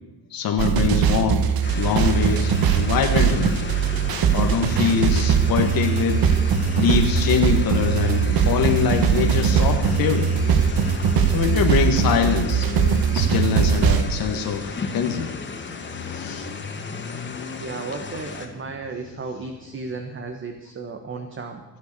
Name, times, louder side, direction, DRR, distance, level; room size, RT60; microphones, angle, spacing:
voice 1, 0.3-3.7 4.3-6.3 6.7-10.3 11.3-12.7 13.1-15.3 16.0-16.5, left 7 dB, 60° left, 4 dB, 1.7 m, -23 dB
sound 1, 0.6-14.1, right 7 dB, 60° right, 1.5 m, -20 dB
sound 2, 1.6-18.5, left 4 dB, 30° left, 2.4 m, -35 dB
Motorcycle, 6.6-20.3, left 5 dB, 45° left, 2.1 m, -40 dB
voice 2, 17.6-21.6, right 4 dB, 30° right, 5 dB, 1.4 m, -34 dB
24.5 x 8.5 x 6.8 m, 1.1 s
cardioid pair, 130°, 39 cm